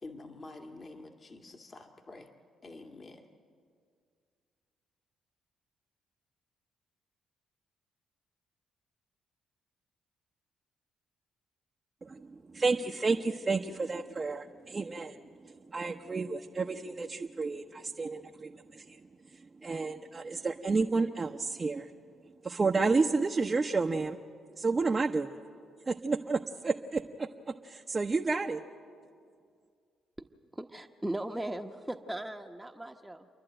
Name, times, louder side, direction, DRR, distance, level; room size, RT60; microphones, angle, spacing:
voice 1, 0.0-2.3 2.6-3.3, left 2 dB, 40° left, 4 dB, 2.0 m, -48 dB
voice 2, 12.5-15.2 15.4-19.0 19.6-21.9 22.4-24.2 24.6-25.4 25.9-27.3 27.6-28.6, right 4 dB, 35° right, 1 dB, 0.9 m, -31 dB
voice 3, 30.5-33.3, right 1 dB, 10° right, 4 dB, 1.1 m, -38 dB
28.5 x 11.5 x 9.0 m, 2.2 s
supercardioid pair, 55°, 0 cm